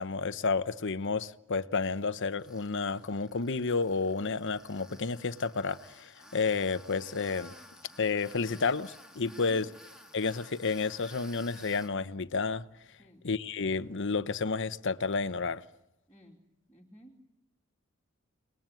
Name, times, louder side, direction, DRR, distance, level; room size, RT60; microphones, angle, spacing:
voice 1, 0.0-7.5 8.0-9.7 10.1-12.6 13.2-15.6, left 4 dB, 60° left, 1.0 m, -31 dB
Tools, 2.4-11.9, left 1 dB, 5° right, 2.2 m, -54 dB
voice 2, 9.3-9.6 13.0-13.2 16.1-16.4 16.7-17.3, right 1 dB, 10° left, 3.0 m, -54 dB
29.5 x 20.5 x 9.2 m
head